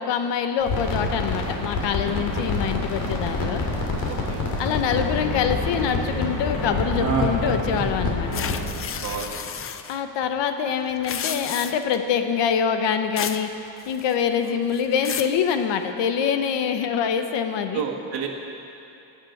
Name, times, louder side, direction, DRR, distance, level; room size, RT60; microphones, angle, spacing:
voice 1, 0.0-3.6 4.6-8.5 9.9-13.5 13.9-17.8, left 7 dB, 65° left, 7 dB, 1.1 m, -25 dB
sound 1, 0.6-9.2, left 3 dB, 50° left, 2.7 m, -27 dB
Laughter, 1.1-5.3 6.9-9.9 10.2-10.3, right 3 dB, 30° right, 2.1 m, -31 dB
voice 2, 4.1-4.5 9.0-9.5 14.5-14.6 17.7-18.3, right 7 dB, 55° right, -2 dB, 1.7 m, -32 dB
sound 2, 8.3-10.0 10.9-12.0 13.2-13.5 13.8-14.3 14.7-15.4, left 8 dB, 30° left, 0.5 m, -32 dB
19.0 x 7.6 x 7.9 m, 2.8 s
cardioid pair, 160°, 46 cm